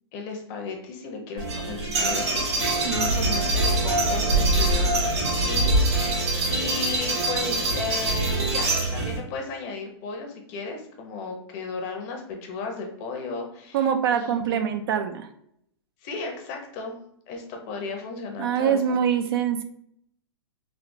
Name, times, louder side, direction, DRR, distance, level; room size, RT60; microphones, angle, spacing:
voice 1, 0.1-13.8 14.1-14.6 16.0-17.0 17.3-18.8, left 4 dB, 40° left, 3 dB, 0.7 m, -35 dB
sound 1, 1.4-9.2, right 2 dB, 75° right, 1.3 m, -24 dB
voice 2, 2.8-3.3 13.7-15.3 18.4-19.6, right 8 dB, 60° right, 9 dB, 0.4 m, -24 dB
3.4 x 2.3 x 2.6 m, 0.71 s
hypercardioid pair, 140°, 14 cm